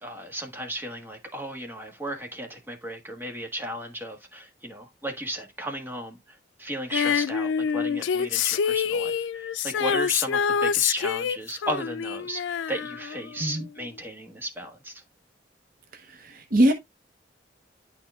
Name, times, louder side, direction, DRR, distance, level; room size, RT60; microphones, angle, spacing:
voice 1, 0.0-15.0, right 1 dB, 10° right, 1.4 m, -35 dB
Female singing, 6.9-13.5 13.8-13.9, left 7 dB, 90° left, 0.4 m, -26 dB
voice 2, 15.9-16.7, right 1 dB, 50° right, 0.8 m, -23 dB
10.5 x 4.4 x 2.3 m
head